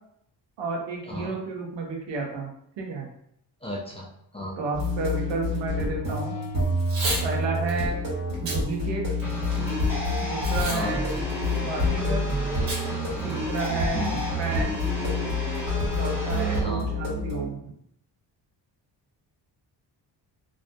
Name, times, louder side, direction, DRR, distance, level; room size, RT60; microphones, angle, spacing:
voice 1, 0.6-2.5 2.8-3.1 4.6-6.4 7.2-8.0 8.4-9.0 10.2-11.1 11.5-12.2 13.2-14.1 14.4-14.8 15.7-17.7, right 3 dB, 85° right, 0 dB, 0.8 m, -31 dB
voice 2, 3.6-4.1 4.3-4.6 10.6-11.0 13.9-14.2 16.6-16.9, left 2 dB, 15° left, -3 dB, 0.4 m, -33 dB
sound 1, 4.7-17.4, left 1 dB, 50° right, 1.2 m, -28 dB
Packing tape duct tape / Tearing, 6.8-7.2 7.7-7.8 8.3-8.6 9.1-9.7 10.4-10.8 11.1-11.2 12.7-12.8 13.2-13.3 13.6-13.9, right 1 dB, 70° right, 1.1 m, -31 dB
sound 2, 9.2-16.6, left 1 dB, 5° right, 0.8 m, -33 dB
2.4 x 2.1 x 2.6 m, 0.74 s
cardioid pair, 120°, 43 cm